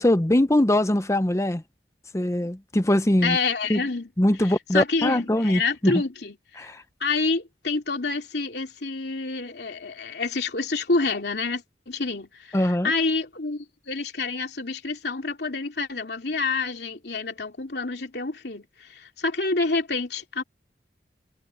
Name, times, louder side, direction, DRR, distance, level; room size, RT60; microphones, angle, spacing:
voice 1, 0.0-1.6 2.1-3.4 3.7-3.8 4.2-6.0 6.6-6.8 12.5-12.9, left 1 dB, 15° left, 0.8 m, -22 dB
voice 2, 3.2-4.1 4.7-6.7 7.0-20.4, left 3 dB, 65° left, 2.9 m, -28 dB
head